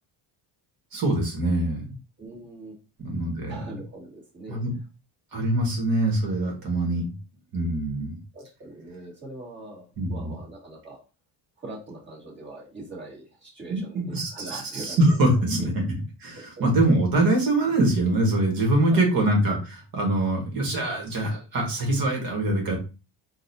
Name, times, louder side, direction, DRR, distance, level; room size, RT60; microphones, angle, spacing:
voice 1, 0.9-1.8 3.0-3.5 4.5-4.7 5.3-7.0 7.5-8.1 10.0-10.3 13.7-15.8 16.2-22.8, right 1 dB, 50° right, 1 dB, 1.6 m, -24 dB
voice 2, 2.2-2.8 3.5-4.6 8.3-11.0 11.6-15.0 15.6-15.7 16.6-16.7 18.8-19.3, right 2 dB, 25° right, -4 dB, 1.8 m, -41 dB
4.0 x 2.5 x 2.7 m, 0.32 s
cardioid pair, 120°, 45 cm